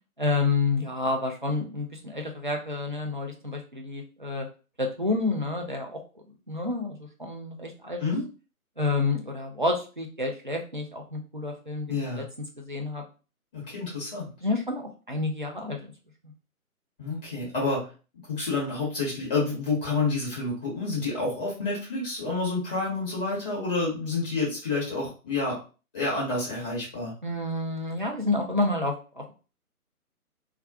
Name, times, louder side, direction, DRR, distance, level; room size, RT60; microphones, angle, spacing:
voice 1, 0.2-4.5 4.8-6.0 6.5-8.0 8.8-12.2 12.6-13.0 14.4-15.9 27.2-29.3, left 3 dB, 35° right, 1 dB, 0.4 m, -29 dB
voice 2, 11.9-12.2 13.5-14.3 17.0-17.9 18.3-25.6 25.9-27.1, left 3 dB, 5° left, -5 dB, 0.7 m, -29 dB
2.3 x 2.3 x 3.6 m, 0.34 s
figure-of-eight pair, 145°, 44 cm